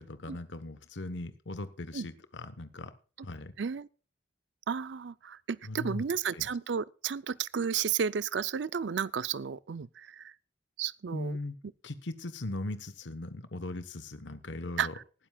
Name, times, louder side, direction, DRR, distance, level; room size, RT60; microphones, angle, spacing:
voice 1, 0.0-2.9 3.2-3.5 5.6-6.0 6.3-6.5 11.1-11.6 11.8-15.0, left 2 dB, 80° left, 1.1 m, -39 dB
voice 2, 3.6-3.9 4.7-9.9 10.2-10.3 10.8-11.4 14.8-14.9, right 7 dB, 75° right, 0.5 m, -32 dB
19.0 x 12.5 x 2.3 m
head